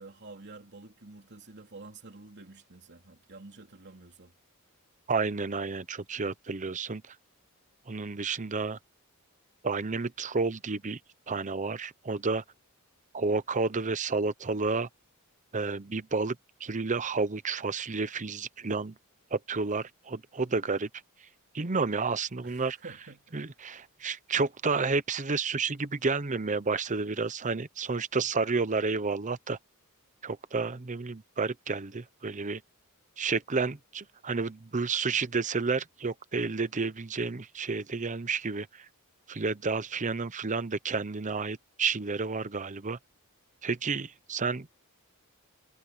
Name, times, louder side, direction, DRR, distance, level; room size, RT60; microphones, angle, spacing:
voice 1, 0.0-4.3 22.4-23.6, right 3 dB, 50° right, 3.2 m, -49 dB
voice 2, 5.1-7.1 7.9-8.8 9.6-11.0 11.3-12.4 13.1-14.9 15.5-18.9 19.3-20.9 21.5-22.8 23.3-29.6 30.2-32.6 33.2-38.9 39.3-43.0 43.6-44.7, right 4 dB, 35° right, 0.8 m, -31 dB
head